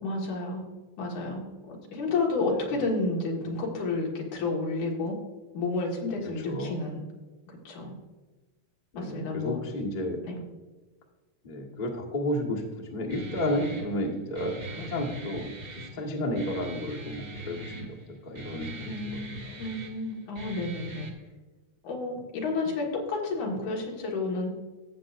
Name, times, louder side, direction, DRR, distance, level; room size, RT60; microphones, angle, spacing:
voice 1, 0.0-0.6 1.0-5.2 5.5-7.1 7.5-7.9 8.9-9.6 10.2-10.4 18.8-21.1 21.8-24.5, left 3 dB, 90° left, -1 dB, 3.2 m, -31 dB
voice 2, 6.5-6.8 8.9-10.2 11.4-15.5 15.9-18.0 18.2-19.6, left 1 dB, 30° left, -3 dB, 0.9 m, -32 dB
Guitar, 13.1-21.1, right 1 dB, 40° right, 1.6 m, -42 dB
15.5 x 7.5 x 2.5 m, 1.2 s
omnidirectional pair, 3.3 m